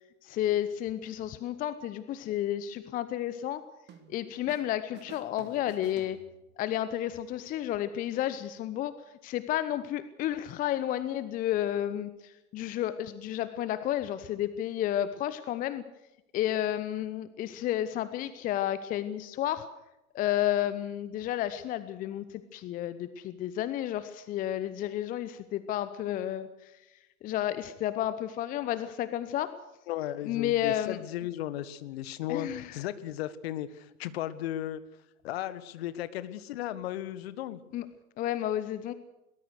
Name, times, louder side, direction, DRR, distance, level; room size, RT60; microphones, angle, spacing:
voice 1, 0.2-3.6 4.1-6.2 6.6-8.9 9.2-15.8 16.3-19.7 20.1-26.7 27.2-29.5 30.2-31.0 32.3-32.8 37.7-37.9 38.2-38.9, left 12 dB, 20° left, 14 dB, 0.8 m, -31 dB
sound 1, 3.9-4.7 4.9-6.7, right 7 dB, 25° right, 2.2 m, -52 dB
voice 2, 29.9-34.8 35.2-37.6, left 12 dB, 45° left, 14 dB, 1.6 m, -35 dB
22.0 x 19.5 x 6.5 m, 0.97 s
figure-of-eight pair, 105°, 43 cm